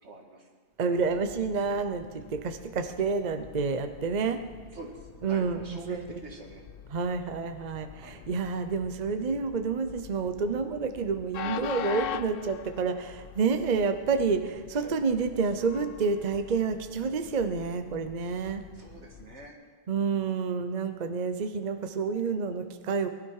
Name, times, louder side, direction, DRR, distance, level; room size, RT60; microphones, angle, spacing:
voice 1, 0.0-0.5 4.7-6.6 7.9-8.3 14.7-15.0 18.7-19.6 20.0-20.3, right 2 dB, 80° right, 2 dB, 2.1 m, -46 dB
voice 2, 0.8-4.4 5.2-6.2 6.9-18.6 19.9-23.1, right 5 dB, 45° right, 8 dB, 0.8 m, -29 dB
Train, 0.9-19.5, left 9 dB, 60° left, 0.7 m, -44 dB
20.0 x 12.0 x 4.8 m, 1.5 s
omnidirectional pair, 1.2 m